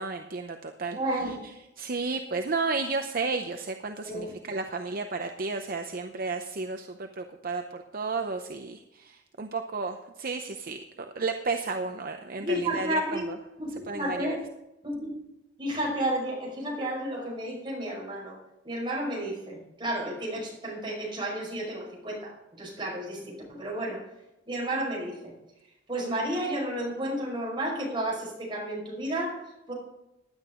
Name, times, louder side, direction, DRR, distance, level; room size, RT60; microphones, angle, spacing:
voice 1, 0.0-1.0 1.8-10.8 11.2-13.0 13.9-14.4, right 4 dB, 50° right, 6 dB, 0.7 m, -32 dB
voice 2, 0.9-1.5 4.1-4.3 12.4-14.4 14.8-15.1 15.6-18.4 18.6-24.1 24.5-25.4 25.9-29.7, right 1 dB, 25° right, -3 dB, 5.3 m, -32 dB
16.0 x 11.0 x 3.8 m, 0.92 s
head